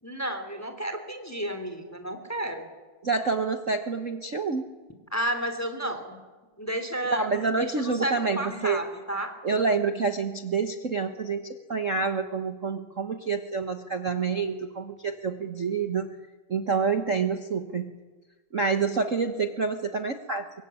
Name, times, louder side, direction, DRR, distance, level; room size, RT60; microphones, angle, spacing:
voice 1, 0.0-2.7 5.1-6.2 6.6-9.3, right 1 dB, 5° left, 7 dB, 2.8 m, -32 dB
voice 2, 3.0-4.7 7.1-8.8 9.4-16.2 16.5-17.9 18.5-20.6, right 4 dB, 70° right, 8 dB, 0.7 m, -28 dB
24.5 x 23.5 x 9.7 m, 1.3 s
omnidirectional pair, 3.3 m